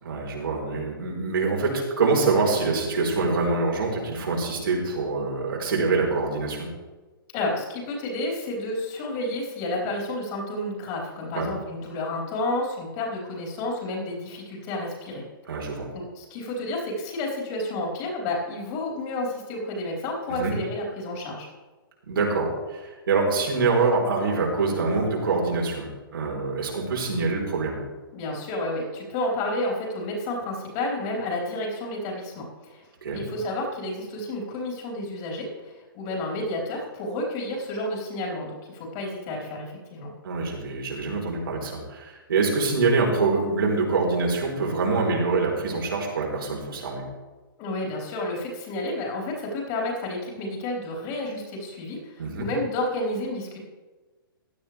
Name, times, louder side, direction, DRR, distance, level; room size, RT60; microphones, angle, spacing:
voice 1, 0.0-6.7 11.3-11.5 15.5-15.9 20.3-20.5 22.1-27.8 33.0-33.3 40.2-47.0 52.2-52.5, right 3 dB, 75° right, -2 dB, 4.3 m, -25 dB
voice 2, 7.3-15.2 15.9-21.5 28.1-32.8 33.1-40.1 47.6-53.6, left 1 dB, 35° left, -2 dB, 4.4 m, -31 dB
16.0 x 10.5 x 3.5 m, 1.2 s
hypercardioid pair, 135°, 12 cm